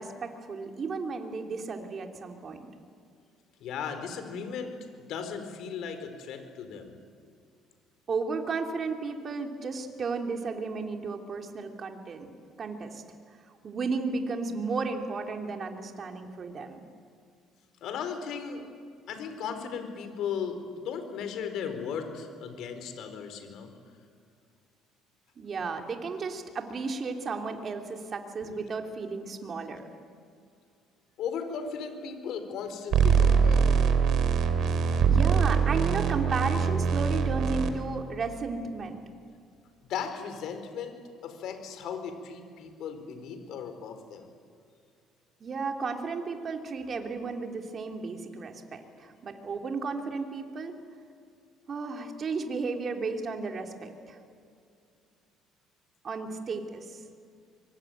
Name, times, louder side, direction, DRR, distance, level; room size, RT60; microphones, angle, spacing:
voice 1, 0.0-2.7 8.1-12.3 12.6-13.0 13.6-16.8 25.4-29.9 35.0-39.0 45.4-50.8 51.7-54.2 56.0-57.0, right 4 dB, 35° right, 4 dB, 3.2 m, -34 dB
voice 2, 3.6-4.7 5.1-7.0 17.8-18.6 19.1-23.7 28.4-28.5 31.2-34.1 39.9-41.0 41.2-44.3, left 6 dB, 65° left, 8 dB, 4.6 m, -36 dB
sound 1, 32.9-37.7, right 6 dB, 55° right, 3.1 m, -23 dB
24.5 x 24.0 x 9.3 m, 2.3 s
cardioid pair, 125°, 0 cm